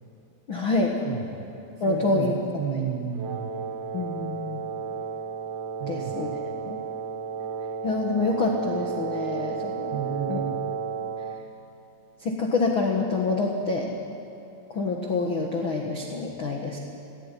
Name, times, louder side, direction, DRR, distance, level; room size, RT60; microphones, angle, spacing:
voice 1, 0.5-0.9 1.8-2.3 2.7-2.9 3.9-4.6 5.9-6.3 6.6-6.8 7.8-10.0 10.3-10.4 12.2-13.9 14.7-16.8, left 3 dB, 70° left, 1 dB, 1.2 m, -26 dB
voice 2, 1.9-3.5 5.8-6.2 9.9-10.6, right 8 dB, 70° right, 1 dB, 3.3 m, -32 dB
Wind instrument woodwind instrument, 3.1-11.4, right 6 dB, 50° right, 2.0 m, -33 dB
18.5 x 16.5 x 9.9 m, 2.9 s
omnidirectional pair, 4.9 m